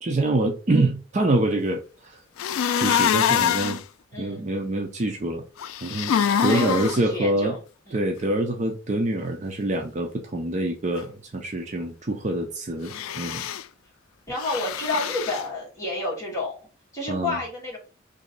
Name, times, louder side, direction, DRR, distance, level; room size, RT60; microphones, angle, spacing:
voice 1, 0.0-2.2 2.8-3.8 4.2-5.4 5.8-6.1 6.4-7.6 7.9-13.4 17.1-17.4, right 1 dB, 35° right, 0.5 m, -25 dB
sound 1, 2.4-3.8 5.6-7.0 12.9-13.6 14.4-15.4, left 8 dB, 90° left, 0.3 m, -24 dB
voice 2, 4.1-4.5 6.4-7.6 7.9-8.1 14.3-16.6 16.9-17.8, left 2 dB, 15° left, 1.5 m, -30 dB
3.0 x 2.7 x 3.9 m
head